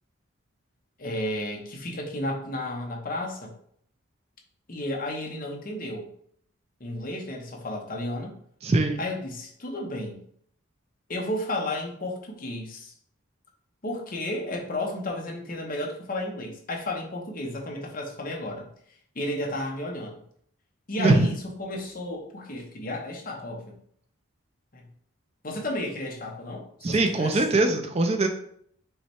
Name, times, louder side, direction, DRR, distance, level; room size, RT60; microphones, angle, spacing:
voice 1, 1.0-3.5 4.7-6.1 6.8-8.3 9.0-10.2 11.1-12.9 13.8-18.7 19.1-20.2 20.9-23.8 24.7-24.8 25.4-27.4, left 1 dB, 40° left, 1 dB, 0.8 m, -33 dB
voice 2, 8.6-9.0 21.0-21.3 26.8-28.3, right 2 dB, 30° right, 5 dB, 0.4 m, -22 dB
5.6 x 2.2 x 4.3 m, 0.65 s
head